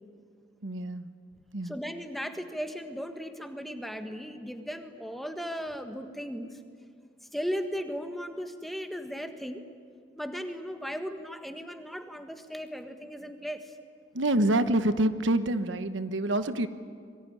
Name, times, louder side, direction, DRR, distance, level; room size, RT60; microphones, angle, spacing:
voice 1, 0.6-1.1 1.5-1.8 14.1-16.7, right 1 dB, 85° right, 10 dB, 1.2 m, -26 dB
voice 2, 1.6-6.6 7.3-9.6 10.2-13.7, equal, ahead, 6 dB, 1.6 m, -36 dB
25.5 x 23.0 x 9.8 m, 2.2 s
head